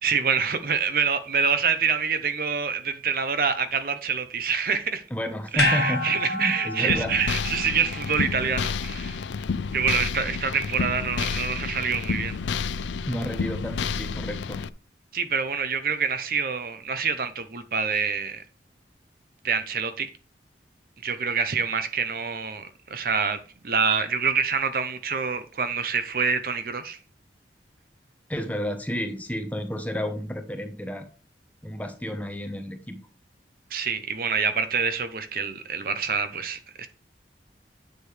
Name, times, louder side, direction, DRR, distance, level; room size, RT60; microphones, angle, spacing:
voice 1, 0.0-5.0 5.5-9.2 9.7-12.4 15.1-18.4 19.4-20.1 21.0-27.0 33.7-36.9, right 6 dB, 50° right, 0.7 m, -26 dB
voice 2, 5.1-7.1 13.1-14.6 28.3-31.1 31.6-33.0, equal, 10° left, 1.0 m, -31 dB
sound 1, 5.6-9.9 10.2-10.3, left 3 dB, 60° left, 1.4 m, -31 dB
sound 2, 6.9-14.7, left 5 dB, 85° left, 0.4 m, -30 dB
9.6 x 6.8 x 3.3 m
head